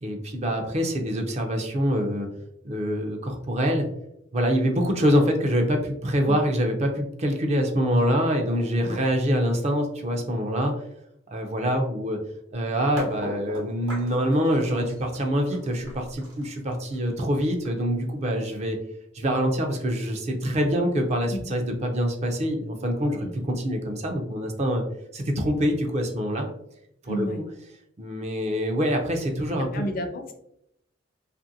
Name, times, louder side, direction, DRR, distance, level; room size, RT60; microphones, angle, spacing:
voice 1, 0.0-2.3 2.6-3.9 4.3-10.7 11.3-12.2 12.5-18.8 19.1-23.2 23.6-24.8 25.1-26.4 27.0-27.3 28.0-29.8, equal, 35° right, 3 dB, 0.4 m, -25 dB
sound 1, 13.0-18.8, left 1 dB, 80° right, 1.0 m, -39 dB
voice 2, 27.1-27.4 29.6-30.4, equal, 45° left, 6 dB, 0.4 m, -32 dB
2.8 x 2.5 x 2.6 m, 0.76 s
head